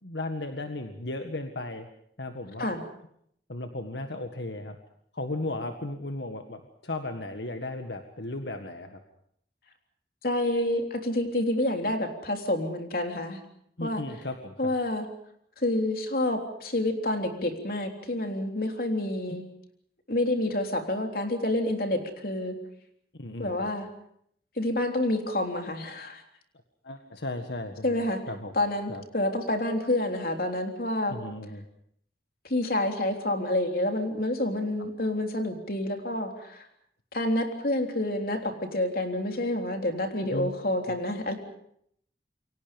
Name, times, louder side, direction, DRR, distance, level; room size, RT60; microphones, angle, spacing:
voice 1, 0.0-1.9 2.2-2.7 3.5-4.8 5.1-9.0 13.8-14.7 19.3-19.4 23.2-23.7 26.8-28.5 28.9-29.0 31.1-31.6 34.8-34.9 40.3-40.5 40.9-41.0, left 2 dB, 80° left, 6 dB, 1.8 m, -35 dB
voice 2, 10.2-13.4 13.8-14.0 14.6-15.1 15.6-19.4 20.1-22.6 23.4-23.9 24.6-26.2 27.8-28.2 28.5-31.2 32.5-36.7 37.1-41.3, left 1 dB, 55° left, 4 dB, 3.6 m, -28 dB
29.0 x 24.0 x 5.3 m, 0.69 s
head